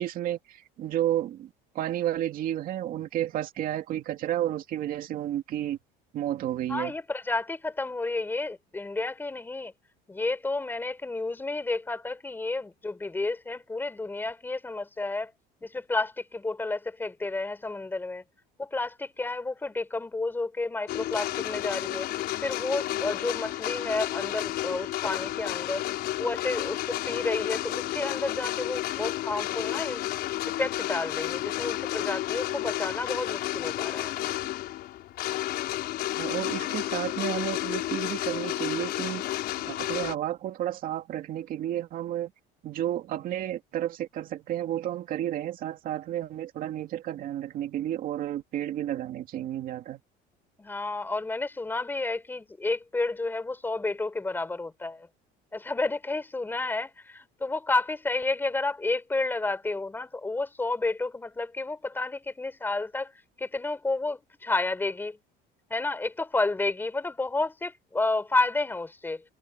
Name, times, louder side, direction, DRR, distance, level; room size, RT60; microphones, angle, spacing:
voice 1, 0.0-5.8 6.1-6.9 36.2-39.2 39.6-42.3 42.6-50.0, right 12 dB, 45° right, 2.3 m, -31 dB
voice 2, 6.7-9.7 10.1-15.3 15.6-18.2 18.6-22.1 22.4-25.8 26.2-30.1 30.6-34.1 50.6-55.1 55.5-63.1 63.4-65.2 65.7-69.2, left 3 dB, 10° left, 4.4 m, -31 dB
sound 1, 20.9-40.1, left 15 dB, 55° left, 5.5 m, -31 dB
cardioid pair, 165°, 20 cm